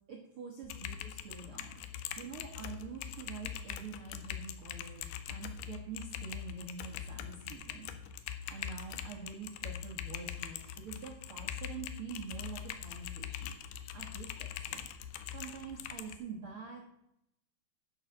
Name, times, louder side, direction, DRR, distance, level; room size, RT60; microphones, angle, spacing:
voice 1, 0.1-1.8 2.2-7.9 8.5-16.8, right 6 dB, 65° right, -1 dB, 1.3 m, -46 dB
Typing, 0.6-16.2, left 10 dB, 80° left, 2.6 m, -42 dB
10.5 x 5.7 x 7.1 m, 0.80 s
omnidirectional pair, 4.6 m